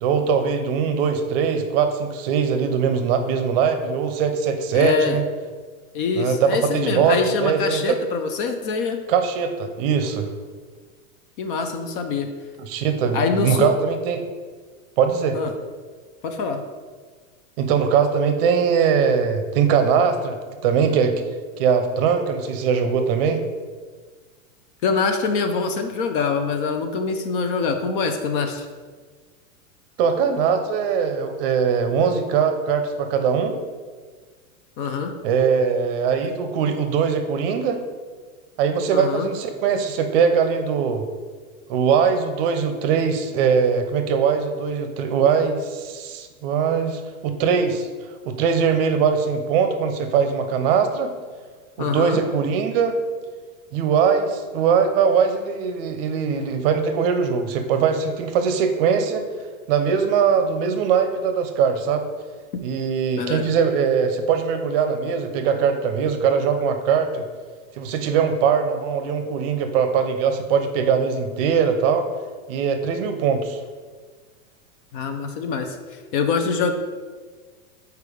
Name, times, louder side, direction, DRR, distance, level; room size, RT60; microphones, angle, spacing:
voice 1, 0.0-5.2 6.1-7.8 9.1-10.3 12.7-14.2 15.0-15.4 17.6-20.4 20.6-21.1 21.6-23.4 30.0-33.6 35.2-37.8 38.6-41.0 41.7-47.9 48.3-51.1 51.8-53.0 53.7-59.2 59.7-62.1 62.6-67.2 67.8-72.0 72.5-73.6, right 6 dB, 45° right, 7 dB, 0.6 m, -21 dB
voice 2, 4.7-5.2 5.9-9.0 11.4-12.3 13.1-13.7 15.3-15.5 16.2-16.6 24.8-28.7 34.8-35.1 38.9-39.3 51.8-52.2 63.2-63.5 74.9-76.7, left 5 dB, 40° left, 6 dB, 0.5 m, -24 dB
4.9 x 4.6 x 4.9 m, 1.5 s
supercardioid pair, 140°, 42 cm